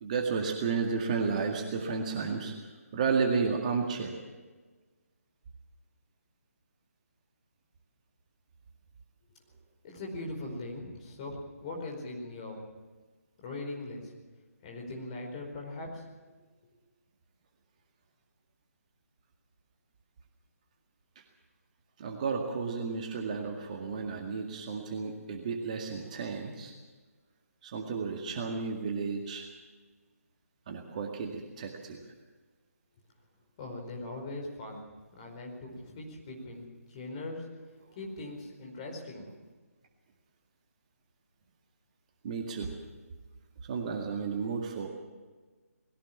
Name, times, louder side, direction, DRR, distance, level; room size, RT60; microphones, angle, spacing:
voice 1, 0.0-2.5 2.9-4.1 22.0-26.7 27.6-29.5 30.7-32.0 42.2-42.7 43.6-44.9, right 5 dB, 30° right, 2 dB, 2.0 m, -32 dB
voice 2, 9.8-12.6 13.4-14.1 14.6-16.0 33.6-34.9 35.2-37.5 37.9-39.3, left 2 dB, 25° left, 0 dB, 4.8 m, -40 dB
21.0 x 17.0 x 7.3 m, 1.3 s
figure-of-eight pair, 145°, 8 cm